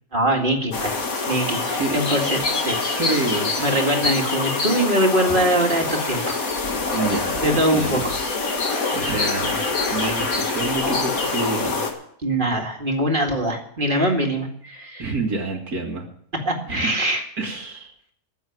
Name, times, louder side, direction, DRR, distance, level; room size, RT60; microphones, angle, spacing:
voice 1, 0.1-1.0 1.3-2.8 3.1-3.2 3.6-6.4 7.4-8.2 8.5-8.9 12.2-15.1 16.5-17.2, right 1 dB, 35° right, 2 dB, 2.3 m, -23 dB
sound 1, 0.7-11.9, left 3 dB, 70° left, 2.2 m, -25 dB
voice 2, 2.9-3.7 6.9-8.1 8.9-9.6 9.9-11.9 15.0-16.0 16.7-16.9 17.4-17.9, right 3 dB, 80° right, 1 dB, 2.6 m, -27 dB
14.0 x 7.4 x 9.3 m, 0.66 s
omnidirectional pair, 1.6 m